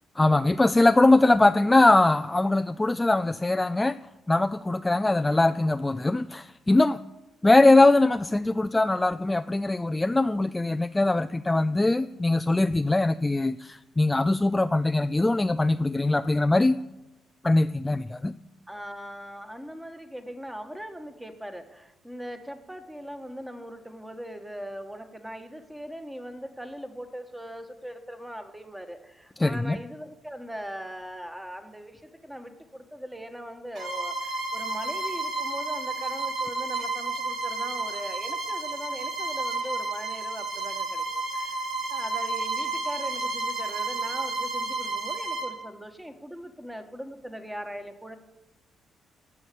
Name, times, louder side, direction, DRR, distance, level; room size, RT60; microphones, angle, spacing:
voice 1, 0.2-4.0 4.3-7.0 7.4-16.8 17.4-18.3 29.4-29.8, left 2 dB, 15° left, 11 dB, 0.4 m, -22 dB
voice 2, 18.7-48.2, equal, 5° right, 6 dB, 1.5 m, -40 dB
Bowed string instrument, 33.7-45.6, right 3 dB, 60° right, 2.7 m, -31 dB
15.5 x 5.7 x 8.5 m, 0.99 s
cardioid pair, 90°, 0 cm